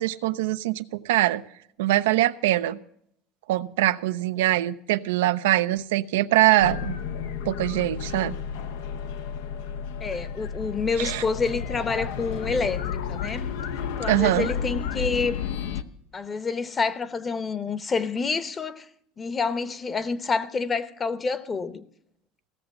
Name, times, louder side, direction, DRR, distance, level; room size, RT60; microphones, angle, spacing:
voice 1, 0.0-1.4 1.8-2.8 3.5-7.0 7.5-8.3 11.0-11.2 14.1-14.5, right 15 dB, 90° right, 0.5 m, -23 dB
sound 1, 6.6-15.8, left 7 dB, 85° left, 0.7 m, -32 dB
voice 2, 10.0-13.5 14.0-15.4 16.1-18.9 19.2-21.8, left 4 dB, 25° left, 0.8 m, -28 dB
16.0 x 6.8 x 7.9 m
supercardioid pair, 115°, 0 cm